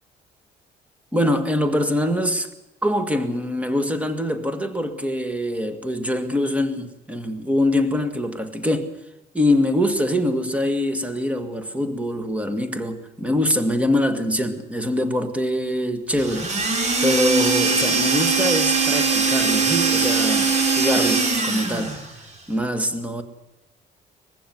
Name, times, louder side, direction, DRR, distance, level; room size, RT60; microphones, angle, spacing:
voice 1, 1.1-2.5 2.8-8.9 9.3-22.0 22.5-23.2, left 1 dB, 10° right, 1.9 m, -24 dB
sound 1, 16.2-22.1, right 4 dB, 40° right, 4.4 m, -21 dB
21.5 x 15.5 x 9.5 m
cardioid pair, 110°, 17 cm